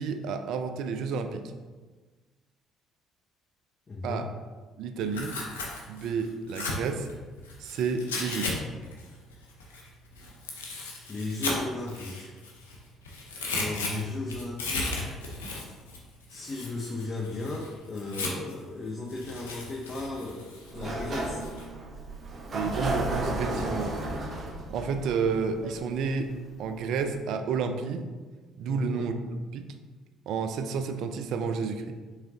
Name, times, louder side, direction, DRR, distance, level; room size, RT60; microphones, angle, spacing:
voice 1, 0.0-1.4 4.0-4.3 4.8-5.4 5.9-7.1 7.6-8.5 22.5-23.9 24.7-26.3 26.6-28.1 28.6-29.1 29.5-29.7 30.3-32.0, right 5 dB, 65° right, 7 dB, 0.4 m, -30 dB
voice 2, 3.9-4.3 11.1-12.3 13.5-15.2 16.3-21.4 28.7-29.1, left 2 dB, 35° left, -3 dB, 0.8 m, -35 dB
Tearing, 5.0-8.5 8.8-12.8 13.1-18.6 19.1-21.6, left 3 dB, 90° left, 0.6 m, -36 dB
Sliding door, 20.6-26.3, right 2 dB, 40° right, 1.0 m, -33 dB
4.7 x 3.7 x 2.8 m, 1.3 s
hypercardioid pair, 55°, 0 cm